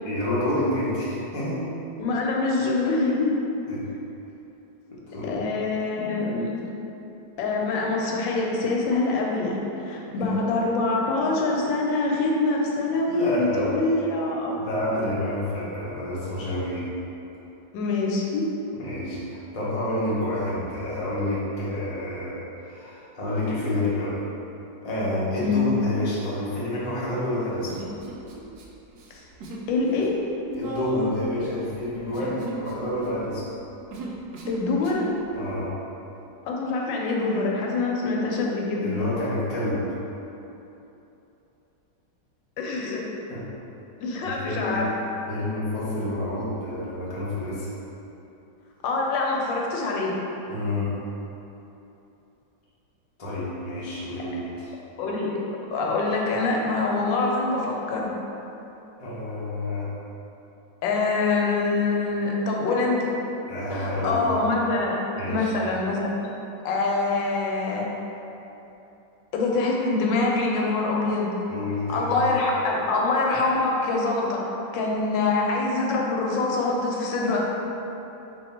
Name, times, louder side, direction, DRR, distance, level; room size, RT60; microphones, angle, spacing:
voice 1, 0.0-1.7 3.7-3.8 4.9-5.4 10.1-10.4 13.0-13.7 14.6-16.9 18.7-24.2 24.8-27.8 30.5-33.5 35.3-35.7 38.8-39.9 43.3-43.4 44.2-44.8 45.3-47.7 50.5-51.0 53.2-54.7 59.0-59.9 63.5-64.3 65.1-65.5 71.5-72.3, left 1 dB, 45° left, -8 dB, 0.4 m, -29 dB
voice 2, 2.0-3.4 5.3-6.7 7.4-9.6 9.9-14.5 17.7-18.4 25.4-25.6 29.7-30.1 34.5-35.1 36.5-38.9 42.6-43.0 44.0-44.9 48.8-50.1 55.0-55.3 55.7-58.1 60.8-63.0 63.7-65.0 65.3-66.0 66.6-67.8 69.3-71.3 71.9-74.4 74.7-77.5, left 3 dB, 85° left, -2 dB, 1.3 m, -24 dB
Human voice, 27.7-28.6 28.9-29.7 29.9-35.1, right 2 dB, 70° right, 1.0 m, -36 dB
3.5 x 2.8 x 4.2 m, 3.0 s
omnidirectional pair, 2.0 m